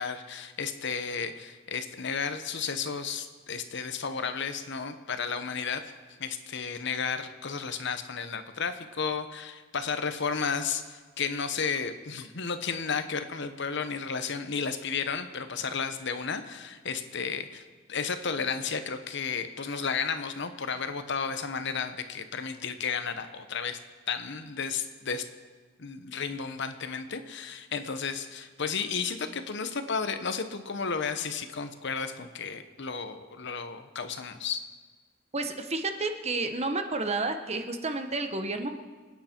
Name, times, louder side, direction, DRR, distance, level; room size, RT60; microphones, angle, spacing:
voice 1, 0.0-5.9 6.2-17.6 17.9-23.8 24.1-25.2 25.8-34.6, left 5 dB, 60° left, 9 dB, 1.0 m, -33 dB
voice 2, 35.3-38.8, right 3 dB, 35° right, 7 dB, 1.1 m, -31 dB
26.5 x 9.5 x 4.5 m, 1.4 s
head